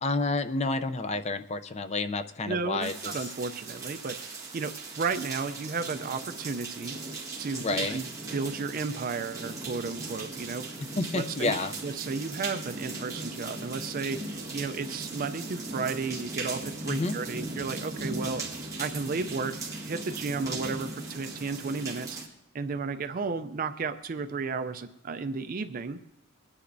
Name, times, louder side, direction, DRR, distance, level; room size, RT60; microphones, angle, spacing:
voice 1, 0.0-3.2 7.6-8.0 11.0-11.7 16.9-17.2, left 3 dB, 30° left, 10 dB, 0.5 m, -29 dB
voice 2, 2.5-4.7 5.0-6.9 7.4-8.1 8.3-10.7 11.1-18.4 18.8-19.6 19.8-22.2 22.5-26.0, right 4 dB, 40° right, 9 dB, 0.4 m, -33 dB
sound 1, 2.8-22.3, right 3 dB, 15° right, 1.7 m, -38 dB
25.0 x 9.9 x 2.6 m, 0.86 s
head